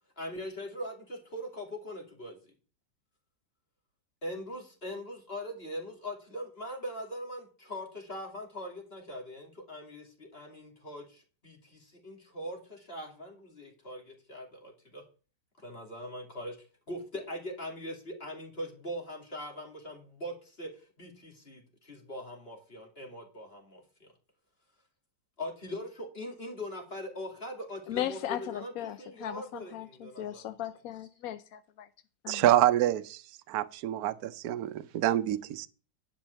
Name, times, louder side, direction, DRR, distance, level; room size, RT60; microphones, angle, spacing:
voice 1, 0.2-2.5 4.2-15.0 15.6-16.6 16.9-24.1 25.4-30.5, equal, 30° left, 2.6 m, -41 dB
voice 2, 27.9-31.9 32.2-32.5, left 12 dB, 70° left, 0.9 m, -37 dB
voice 3, 32.3-33.2 33.5-35.7, right 12 dB, 65° right, 1.1 m, -27 dB
10.5 x 5.4 x 6.7 m
omnidirectional pair, 2.0 m